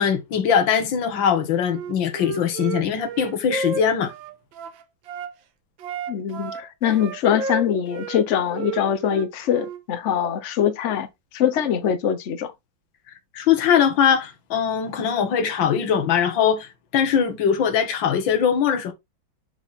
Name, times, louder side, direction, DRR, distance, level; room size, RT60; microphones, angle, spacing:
voice 1, 0.0-4.1 13.3-18.9, left 8 dB, 70° left, 2.0 m, -21 dB
Wind instrument woodwind instrument, 1.7-5.3 5.8-8.3 8.5-9.8, right 4 dB, 75° right, 1.7 m, -32 dB
voice 2, 6.1-11.1 11.3-12.5, left 9 dB, 45° left, 1.0 m, -23 dB
8.0 x 4.0 x 4.2 m
omnidirectional pair, 2.1 m